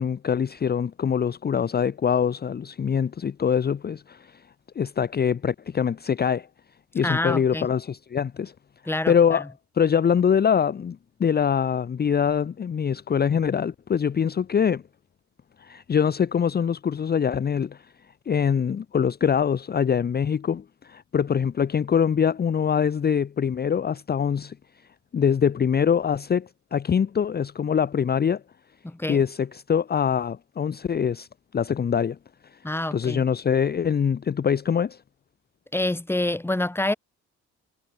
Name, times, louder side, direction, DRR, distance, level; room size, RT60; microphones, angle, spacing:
voice 1, 0.0-4.4 4.8-6.5 6.9-8.5 9.1-9.5 9.8-14.8 15.6-17.8 18.3-24.6 25.1-28.4 29.1-32.2 32.5-32.6 32.9-35.0, left 7 dB, 30° left, 0.7 m, -24 dB
voice 2, 7.0-7.7 8.9-9.1 28.8-29.2 32.6-33.2 35.7-36.9, left 1 dB, 10° left, 1.5 m, -26 dB
cardioid pair, 90°, 30 cm